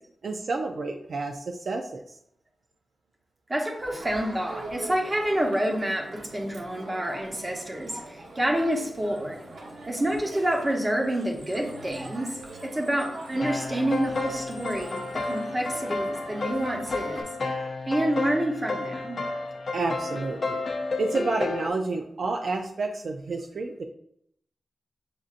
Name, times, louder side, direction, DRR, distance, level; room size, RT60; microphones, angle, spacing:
voice 1, 0.2-2.0 19.7-20.6 21.0-23.8, right 3 dB, 60° right, 3 dB, 0.4 m, -29 dB
voice 2, 3.5-9.4 9.9-17.3 17.9-19.3, right 1 dB, 20° right, 0 dB, 0.9 m, -28 dB
Crowd, 3.8-17.2, right 2 dB, 85° right, 0.9 m, -43 dB
sound 1, 13.3-21.7, left 3 dB, 50° left, 0.4 m, -32 dB
7.3 x 2.6 x 2.5 m, 0.72 s
wide cardioid pair, 145°, 0 cm